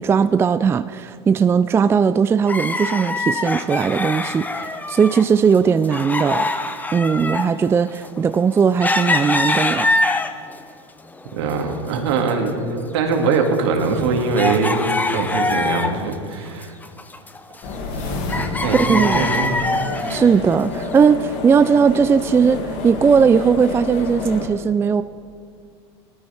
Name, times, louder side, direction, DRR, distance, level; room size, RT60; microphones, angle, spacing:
voice 1, 0.0-6.5 6.9-9.9 18.7-19.3 20.1-25.0, right 6 dB, 15° right, 12 dB, 0.3 m, -18 dB
sound 1, 2.5-5.3 5.5-10.6 11.1-12.0 12.2-12.3 12.9-16.1 16.5-18.0 18.3-20.3 20.9-21.0, left 2 dB, 10° left, 0.8 m, -24 dB
voice 2, 11.3-16.7 18.0-18.2 18.6-19.6 19.9-20.2, right 4 dB, 65° right, 2 dB, 2.3 m, -22 dB
sound 2, 17.6-24.5, left 3 dB, 55° left, 2.4 m, -29 dB
19.5 x 13.0 x 3.5 m, 2.2 s
hypercardioid pair, 95°, 15 cm